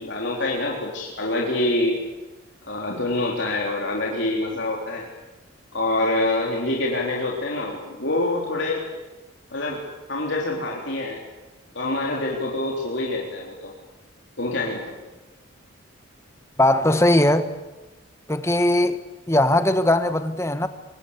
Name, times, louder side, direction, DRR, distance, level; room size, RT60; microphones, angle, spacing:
voice 1, 0.0-2.0 2.6-5.1 5.7-8.8 9.5-11.2 11.7-13.7 14.4-15.0, left 2 dB, 60° left, 3.8 m, -26 dB
voice 2, 16.6-17.5 18.3-19.0 19.3-20.7, left 1 dB, 15° left, 1.3 m, -19 dB
26.0 x 23.0 x 8.5 m
head